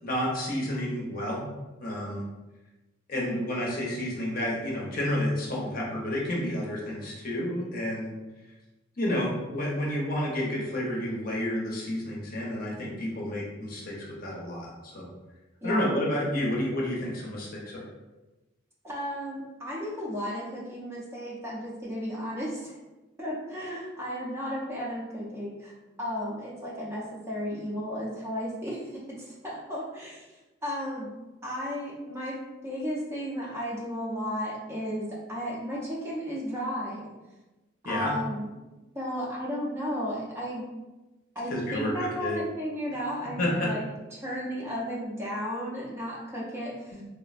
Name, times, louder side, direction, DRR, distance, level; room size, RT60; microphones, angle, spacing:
voice 1, 0.0-1.5 1.8-2.2 3.1-8.1 9.0-15.1 15.6-17.9 37.8-38.1 41.5-42.4 43.2-43.7, left 1 dB, 45° left, -3 dB, 0.6 m, -30 dB
voice 2, 18.8-22.8 23.2-25.7 26.0-30.3 30.6-37.1 37.8-38.5 38.9-40.7 41.4-43.8 44.1-47.0, equal, 15° right, -6 dB, 0.5 m, -34 dB
3.3 x 2.1 x 2.4 m, 1.1 s
head